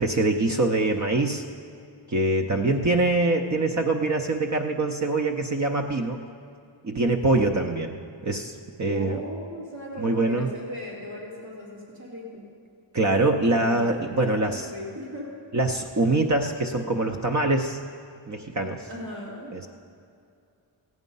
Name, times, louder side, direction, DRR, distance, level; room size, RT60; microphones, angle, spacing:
voice 1, 0.0-1.4 2.1-6.2 6.8-9.2 10.0-10.5 12.9-14.7 15.5-17.8 18.3-18.9 19.5-19.7, right 2 dB, 35° right, 3 dB, 0.7 m, -24 dB
voice 2, 8.9-12.5 13.6-13.9 14.1-15.3 18.9-19.5, left 1 dB, 85° right, -6 dB, 3.0 m, -38 dB
15.0 x 9.5 x 5.4 m, 2.4 s
wide cardioid pair, 100°, 48 cm